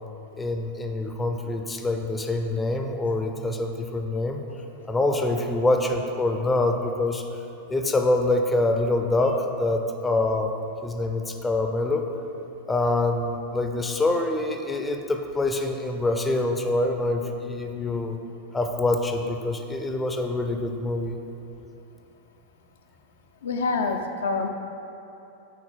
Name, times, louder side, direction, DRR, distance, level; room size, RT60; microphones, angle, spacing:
voice 1, 0.4-4.4 4.9-7.2 7.7-10.5 10.8-12.1 12.7-18.2 18.5-21.2, left 2 dB, 10° left, 4 dB, 0.5 m, -25 dB
voice 2, 23.4-24.5, left 4 dB, 65° left, 4 dB, 0.4 m, -26 dB
6.4 x 4.0 x 5.6 m, 2.9 s
figure-of-eight pair, 90°, 0 cm